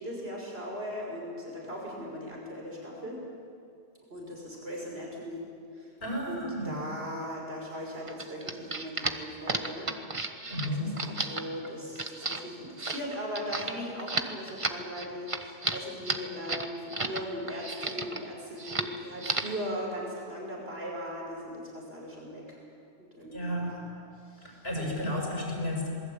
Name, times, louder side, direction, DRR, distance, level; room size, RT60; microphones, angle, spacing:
voice 1, 0.0-3.2 4.1-5.4 5.7-5.9 6.3-9.9 10.2-10.3 10.6-22.6 23.0-23.8 24.3-24.6, equal, 65° right, -2 dB, 6.0 m, -39 dB
voice 2, 6.0-6.8 10.5-11.1 23.3-24.1 24.4-25.9, equal, 65° left, -1 dB, 6.5 m, -33 dB
sound 1, 8.1-17.2 17.5-18.2 18.6-18.9 19.2-19.6, right 3 dB, 30° right, 1.3 m, -33 dB
27.0 x 20.5 x 8.7 m, 2.5 s
omnidirectional pair, 1.1 m